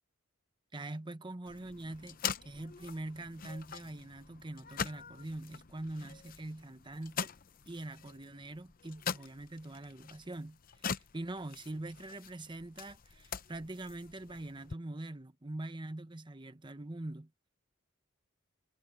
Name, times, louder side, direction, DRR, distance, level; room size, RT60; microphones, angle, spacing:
voice 1, 0.7-7.3 7.7-17.3, right 2 dB, 20° right, 0.9 m, -43 dB
sound 1, 1.5-14.7, left 7 dB, 40° left, 0.7 m, -43 dB
head